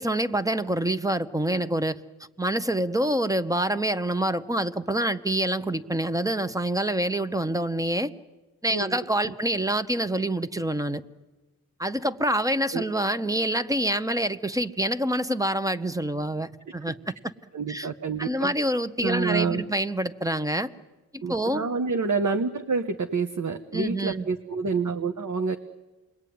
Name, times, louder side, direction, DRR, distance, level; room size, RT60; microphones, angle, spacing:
voice 1, 0.0-2.0 2.4-8.1 8.6-11.0 11.8-17.1 17.7-17.9 18.2-20.7 21.1-21.7 23.7-24.2, right 1 dB, 10° right, 11 dB, 1.1 m, -26 dB
voice 2, 17.5-18.5 19.0-19.6 21.2-25.6, right 4 dB, 50° right, 7 dB, 1.3 m, -28 dB
27.5 x 21.5 x 9.5 m, 1.2 s
cardioid pair, 80°, 38 cm